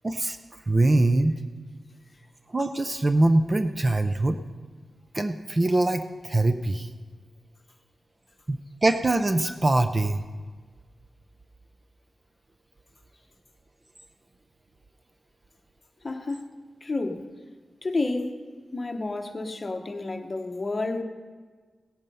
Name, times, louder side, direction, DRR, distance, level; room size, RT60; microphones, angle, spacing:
voice 1, 0.0-0.4 0.7-1.3 2.5-4.4 5.1-6.9 8.5-10.2, right 2 dB, 25° right, 0.5 m, -23 dB
voice 2, 16.0-16.4 16.8-17.2 17.8-18.4 18.7-21.0, left 2 dB, 25° left, 1.0 m, -30 dB
17.0 x 8.9 x 5.5 m
wide cardioid pair, 140°, 0 cm